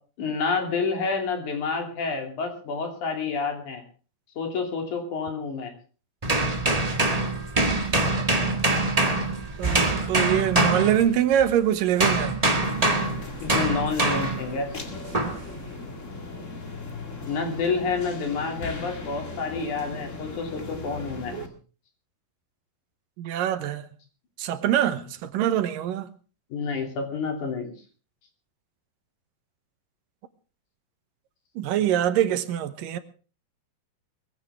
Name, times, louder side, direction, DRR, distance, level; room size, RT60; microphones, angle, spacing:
voice 1, 0.2-3.8 4.4-5.7 13.4-14.7 17.3-21.4 26.5-27.7, left 4 dB, 60° left, 4.2 m, -29 dB
sound 1, 6.2-11.5 12.0-14.5 15.1-15.4, right 2 dB, 25° right, 0.8 m, -24 dB
voice 2, 9.6-12.3 21.3-21.5 23.2-23.9 24.4-26.1 31.6-33.0, right 10 dB, 80° right, 2.7 m, -24 dB
sound 2, 12.6-21.5, left 2 dB, 30° left, 1.7 m, -38 dB
21.0 x 15.5 x 3.6 m
omnidirectional pair, 3.9 m